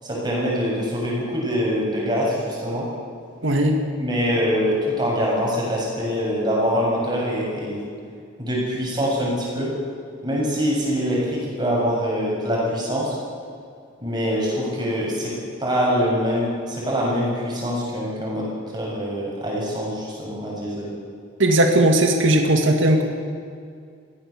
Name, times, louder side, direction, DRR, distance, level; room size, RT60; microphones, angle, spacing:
voice 1, 0.0-2.9 4.0-7.8 8.4-9.7 10.2-13.2 14.0-15.3 15.6-20.9, equal, 20° right, -4 dB, 7.3 m, -24 dB
voice 2, 3.4-3.8 21.4-23.0, right 1 dB, 65° right, 2 dB, 2.1 m, -17 dB
22.5 x 16.5 x 7.3 m, 2.2 s
head